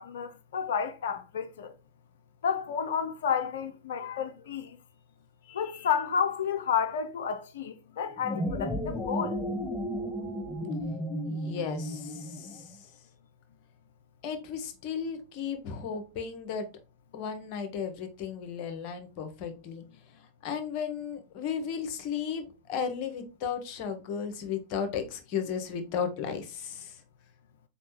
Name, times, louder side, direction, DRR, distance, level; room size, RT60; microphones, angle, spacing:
voice 1, 0.0-1.7 2.4-4.8 5.5-9.4, left 7 dB, 60° left, 0.4 m, -31 dB
sound 1, 8.1-12.7, equal, 15° left, 0.8 m, -33 dB
voice 2, 11.2-12.9 14.2-16.7 17.1-19.8 20.4-27.0, left 7 dB, 45° left, 0.8 m, -35 dB
4.2 x 3.2 x 3.0 m
figure-of-eight pair, 90°, 0 cm